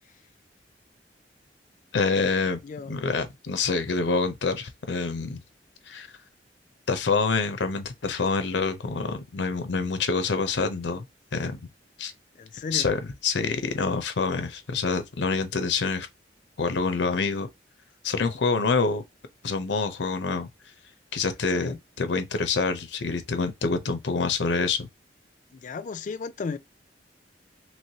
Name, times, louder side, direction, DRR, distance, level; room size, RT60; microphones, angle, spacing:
voice 1, 1.9-2.6 2.9-5.4 5.9-6.1 6.9-11.0 11.3-11.6 12.0-12.1 12.7-16.1 16.6-17.5 18.0-19.0 19.4-20.5 21.1-24.9, left 4 dB, 90° left, 0.6 m, -26 dB
voice 2, 12.4-12.9 21.5-21.8 25.5-26.6, left 4 dB, 45° left, 0.4 m, -34 dB
3.1 x 3.0 x 2.7 m
head